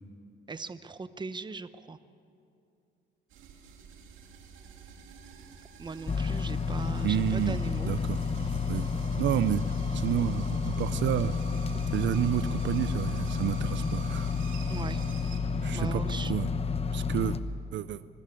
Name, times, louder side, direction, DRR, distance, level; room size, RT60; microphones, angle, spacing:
voice 1, 0.5-2.0 5.8-7.9 14.7-15.0 15.7-16.3 17.2-17.3, right 4 dB, 20° right, 13 dB, 0.8 m, -39 dB
sound 1, 3.3-15.4, right 6 dB, 85° right, 2.4 m, -48 dB
sound 2, 6.1-17.4, left 5 dB, 30° left, 0.8 m, -30 dB
voice 2, 7.0-7.6 7.8-8.2 8.7-8.9 9.2-9.6 9.9-11.4 11.9-14.3 15.6-16.5 16.9-17.4 17.7-18.0, right 12 dB, 65° right, 15 dB, 0.5 m, -30 dB
24.0 x 13.5 x 8.4 m, 2.6 s
cardioid pair, 90°, 20 cm